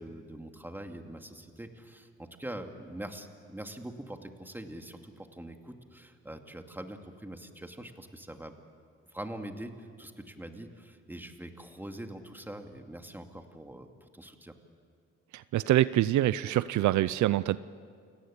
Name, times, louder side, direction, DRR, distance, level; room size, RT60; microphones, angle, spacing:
voice 1, 0.0-8.5 9.1-14.5, right 1 dB, 5° right, 5 dB, 2.3 m, -43 dB
voice 2, 15.3-17.6, right 14 dB, 75° right, 17 dB, 0.6 m, -25 dB
28.5 x 18.0 x 8.6 m, 2.2 s
cardioid pair, 80°, 29 cm